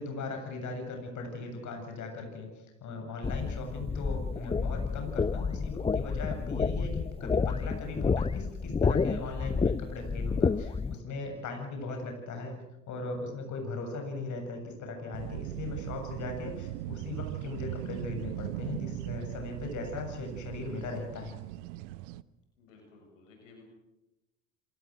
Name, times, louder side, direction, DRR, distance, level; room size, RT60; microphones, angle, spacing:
voice 1, 0.0-12.6 12.9-21.4, left 3 dB, 50° left, 4 dB, 7.5 m, -38 dB
sound 1, 3.2-10.9, left 5 dB, 15° left, 0.7 m, -30 dB
sound 2, 15.1-22.2, right 16 dB, 70° right, 0.9 m, -39 dB
voice 2, 22.6-23.6, left 3 dB, 85° left, 2 dB, 6.9 m, -56 dB
28.0 x 19.0 x 6.4 m, 0.94 s
hypercardioid pair, 70°, 37 cm